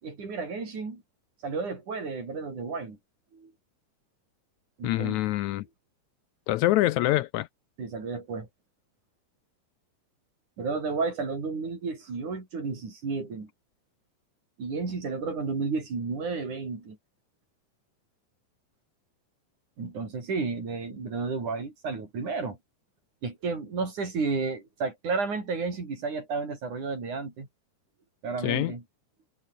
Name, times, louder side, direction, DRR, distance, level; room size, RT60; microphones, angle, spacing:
voice 1, 0.0-1.0 1.4-3.0 3.3-3.5 4.8-5.2 7.8-8.5 10.6-13.5 14.6-17.0 19.8-22.6 23.2-27.5 28.2-28.8, right 4 dB, 70° right, 7.2 m, -32 dB
voice 2, 4.8-5.7 6.5-7.5 28.4-28.7, left 16 dB, 75° left, 1.8 m, -25 dB
omnidirectional pair, 3.7 m